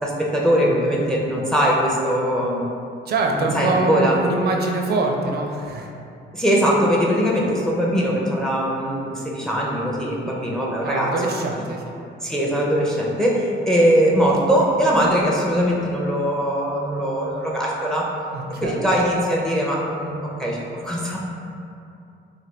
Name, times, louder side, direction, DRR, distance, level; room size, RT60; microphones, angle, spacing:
voice 1, 0.0-2.7 3.3-4.2 6.3-11.3 12.2-18.1 18.6-21.3, equal, 5° left, -3 dB, 0.4 m, -21 dB
voice 2, 3.1-5.9 10.8-11.8 18.3-18.9, right 2 dB, 55° right, 2 dB, 0.5 m, -24 dB
3.3 x 2.2 x 3.0 m, 2.6 s
cardioid pair, 90°, 20 cm